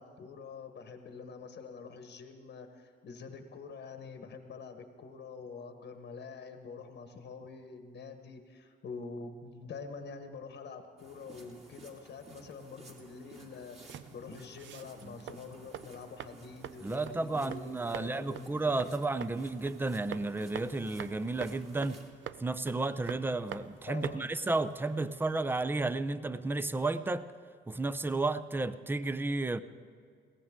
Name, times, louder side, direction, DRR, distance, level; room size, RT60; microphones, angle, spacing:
voice 1, 0.0-18.9 23.9-24.3, left 4 dB, 60° left, 1.2 m, -46 dB
sound 1, 11.0-22.1, right 2 dB, 30° right, 2.6 m, -55 dB
sound 2, 13.8-25.4, right 10 dB, 70° right, 0.6 m, -47 dB
voice 2, 16.8-22.0 22.4-27.3 27.7-29.6, right 2 dB, 10° right, 0.6 m, -32 dB
21.0 x 17.0 x 3.7 m
cardioid pair, 90°, 20 cm